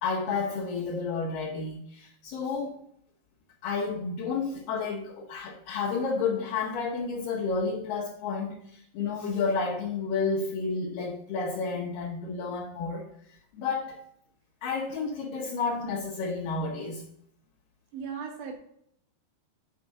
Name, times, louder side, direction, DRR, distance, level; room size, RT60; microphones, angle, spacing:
voice 1, 0.0-2.8 3.6-13.1 13.5-14.0 14.6-17.0, left 4 dB, 70° left, -3 dB, 2.2 m, -31 dB
voice 2, 17.9-18.5, right 6 dB, 60° right, 0 dB, 2.4 m, -36 dB
6.7 x 5.0 x 6.3 m, 0.70 s
omnidirectional pair, 5.0 m